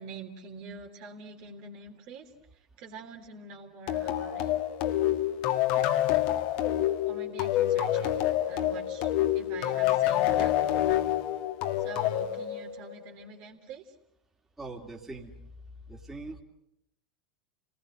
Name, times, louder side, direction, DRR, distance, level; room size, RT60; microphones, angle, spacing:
voice 1, 0.0-2.3 2.8-4.5 7.0-11.0 11.8-13.8, right 4 dB, 50° right, 3 dB, 3.4 m, -45 dB
sound 1, 3.9-13.1, left 12 dB, 50° left, 1.9 m, -27 dB
voice 2, 14.6-15.3 15.9-16.4, right 3 dB, 10° right, 0 dB, 3.0 m, -41 dB
29.5 x 20.0 x 8.0 m, 0.81 s
figure-of-eight pair, 90°, 3 cm